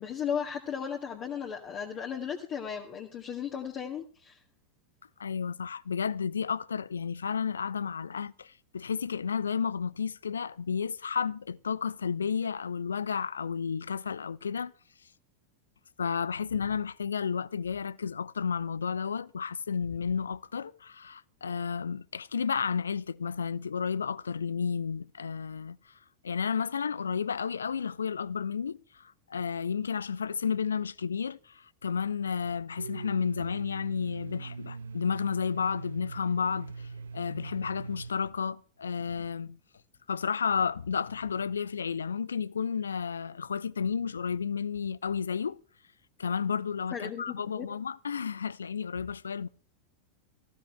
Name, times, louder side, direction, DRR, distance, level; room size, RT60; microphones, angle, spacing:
voice 1, 0.0-4.4 46.9-47.7, left 7 dB, 35° left, 2.1 m, -35 dB
voice 2, 5.2-14.7 16.0-25.9 26.2-39.6 40.1-45.6 46.2-49.5, left 6 dB, 70° left, 0.6 m, -32 dB
Domestic sounds home sounds, 32.8-38.1, right 4 dB, 70° right, 1.1 m, -41 dB
18.5 x 16.0 x 3.3 m
figure-of-eight pair, 90°, 0 cm